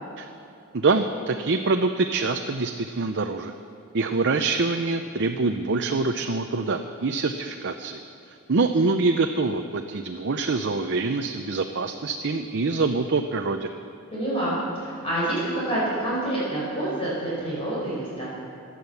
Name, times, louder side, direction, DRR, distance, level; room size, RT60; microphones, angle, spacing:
voice 1, 0.7-3.5 3.9-8.0 8.5-13.7, right 3 dB, 55° right, 5 dB, 0.6 m, -25 dB
voice 2, 14.1-18.2, right 1 dB, 25° left, -8 dB, 4.8 m, -27 dB
17.0 x 11.5 x 7.0 m, 2.6 s
head